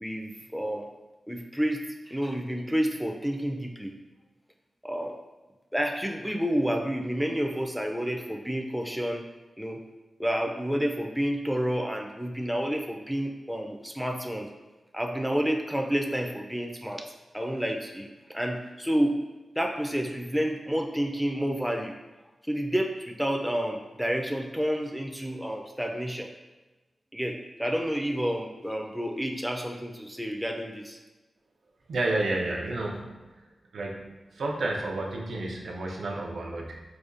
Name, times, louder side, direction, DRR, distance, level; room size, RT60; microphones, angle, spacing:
voice 1, 0.0-0.9 1.3-3.9 4.8-5.2 5.7-9.2 9.6-9.8 10.2-14.5 14.9-17.1 17.3-19.2 19.6-22.0 22.4-26.3 27.1-31.0, equal, ahead, 1 dB, 0.4 m, -29 dB
voice 2, 31.9-33.4 33.7-36.8, right 2 dB, 90° right, -1 dB, 0.5 m, -31 dB
4.8 x 2.2 x 2.5 m, 1.1 s
wide cardioid pair, 75°, 0 cm